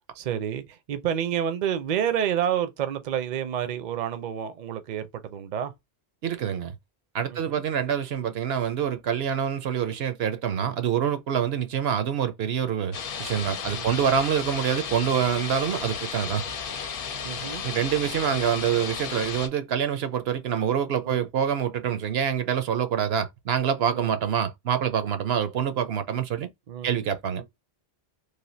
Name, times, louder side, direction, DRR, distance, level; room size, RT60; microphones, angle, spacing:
voice 1, 0.1-5.7 7.3-7.6 13.7-13.9 17.2-17.6 21.0-21.3 23.9-24.1 26.7-27.0 27.4-27.5, right 9 dB, 50° right, 0.7 m, -29 dB
voice 2, 6.2-6.7 7.1-16.5 17.6-26.5 26.8-27.4, right 8 dB, 75° right, 0.9 m, -26 dB
sound 1, 12.9-19.5, left 6 dB, 65° left, 0.8 m, -34 dB
3.3 x 2.5 x 2.6 m
omnidirectional pair, 1.0 m